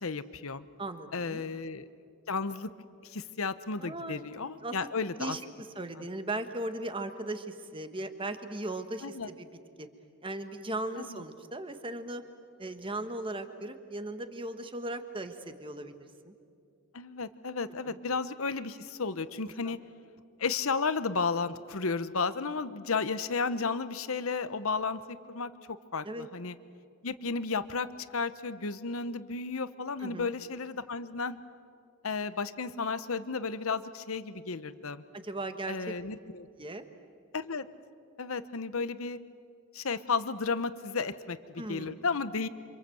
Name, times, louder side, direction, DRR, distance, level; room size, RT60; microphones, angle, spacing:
voice 1, 0.0-0.6 1.1-1.9 2.3-2.7 3.0-5.4 6.0-6.1 9.0-9.3 11.1-11.2 16.9-19.8 20.4-25.5 25.9-26.6 27.0-27.9 28.1-31.4 32.0-35.0 35.7-36.5 37.3-37.7 38.2-39.2 39.7-42.5, left 4 dB, 70° left, 13 dB, 1.0 m, -33 dB
voice 2, 0.8-1.4 3.8-4.2 4.6-4.8 5.2-9.5 9.8-9.9 10.2-12.2 12.6-16.3 17.8-18.0 19.6-19.8 26.0-26.3 30.0-30.3 35.1-35.9 36.6-36.9 41.6-42.0, right 2 dB, 25° right, 8 dB, 1.4 m, -38 dB
28.5 x 26.0 x 7.9 m, 2.4 s
head